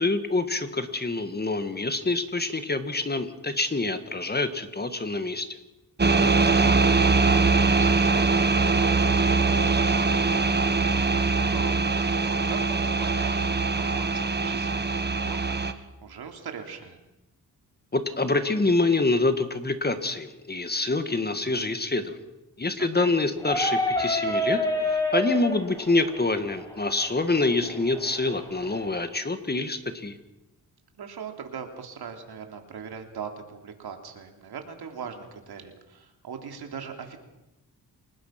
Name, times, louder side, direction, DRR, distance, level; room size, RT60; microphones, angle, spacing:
voice 1, 0.0-5.5 17.9-22.2 22.6-24.6 24.9-30.1, left 3 dB, 25° left, 9 dB, 1.8 m, -26 dB
sound 1, 6.0-15.7, right 4 dB, 25° right, 1.5 m, -22 dB
voice 2, 6.2-17.0 22.8-23.1 31.0-37.2, right 6 dB, 75° right, 4 dB, 3.3 m, -41 dB
sound 2, 23.4-29.0, left 1 dB, 10° left, 6.3 m, -29 dB
29.0 x 19.5 x 5.9 m, 0.97 s
cardioid pair, 100°, 38 cm